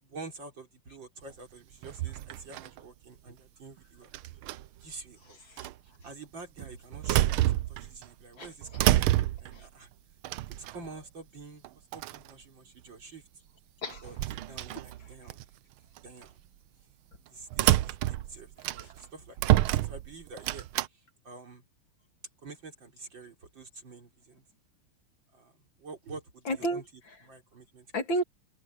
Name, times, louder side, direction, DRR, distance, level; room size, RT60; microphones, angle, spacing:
voice 1, 0.0-4.1 4.8-5.4 5.8-7.4 7.7-9.9 10.5-11.7 11.9-13.3 14.0-15.5 16.0-16.4 17.3-19.6 19.8-21.6 22.4-24.4 25.3-26.8 27.2-27.9, right 3 dB, 55° right, 4.5 m, -48 dB
sound 1, 1.8-2.8 4.1-4.8 5.6-5.7 6.6-8.1 8.4-9.6 10.2-11.0 11.6-11.7 11.9-12.3 13.9-15.4 16.0-16.2 17.5-19.1 19.4-20.9, right 15 dB, 75° right, 1.5 m, -28 dB
voice 2, 5.3-5.6 8.4-8.8 9.5-9.6 13.8-14.6 15.0-15.1 26.4-27.3 27.9-28.2, right 1 dB, 60° left, 3.5 m, -34 dB
open air
omnidirectional pair, 2.4 m